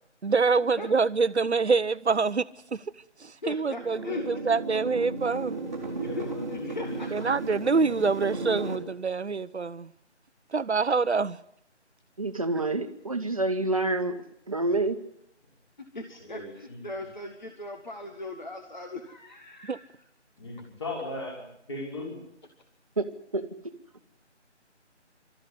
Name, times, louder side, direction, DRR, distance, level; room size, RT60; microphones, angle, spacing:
voice 1, 0.2-2.5 2.7-2.8 3.2-4.0 4.3-5.6 7.1-9.9 10.5-11.4 19.7-19.8, right 4 dB, 70° right, 0.9 m, -25 dB
voice 2, 3.4-4.2 6.0-7.3 15.9-19.8, left 2 dB, 40° left, 1.8 m, -39 dB
sound 1, 3.7-8.8, right 3 dB, 15° right, 2.1 m, -35 dB
voice 3, 6.0-7.0 16.3-16.8 20.4-22.2, left 2 dB, 25° left, 5.1 m, -38 dB
voice 4, 12.2-14.2 14.5-15.0 23.0-23.4, right 2 dB, 30° right, 1.3 m, -27 dB
26.0 x 13.5 x 9.7 m
figure-of-eight pair, 170°, 35 cm